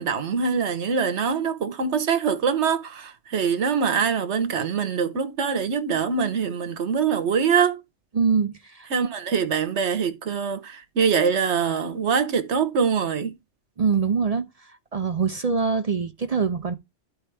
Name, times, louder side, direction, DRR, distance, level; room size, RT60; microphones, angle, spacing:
voice 1, 0.0-7.8 8.9-13.3, right 6 dB, 70° right, 1.3 m, -24 dB
voice 2, 8.1-8.9 13.8-14.5 14.9-16.8, right 5 dB, 50° right, 0.5 m, -23 dB
13.0 x 4.4 x 3.4 m
omnidirectional pair, 1.2 m